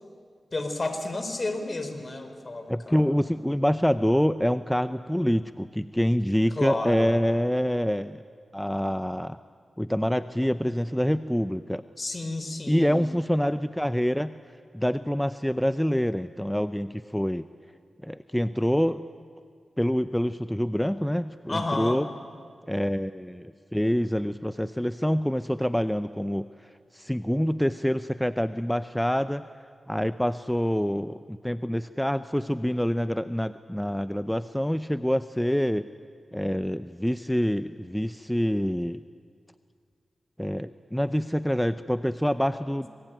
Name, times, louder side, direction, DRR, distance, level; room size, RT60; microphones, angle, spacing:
voice 1, 0.5-3.4 6.6-7.2 12.0-13.1 21.5-22.0 42.7-42.9, left 2 dB, 45° left, 8 dB, 3.9 m, -32 dB
voice 2, 2.7-8.2 8.5-9.4 9.8-11.8 12.7-14.4 14.7-17.5 18.0-19.0 19.8-22.1 22.7-26.5 26.9-29.4 29.9-35.9 36.3-39.0 40.4-42.9, equal, 5° left, 12 dB, 0.7 m, -26 dB
26.0 x 23.0 x 9.1 m, 2.2 s
cardioid pair, 45°, 0 cm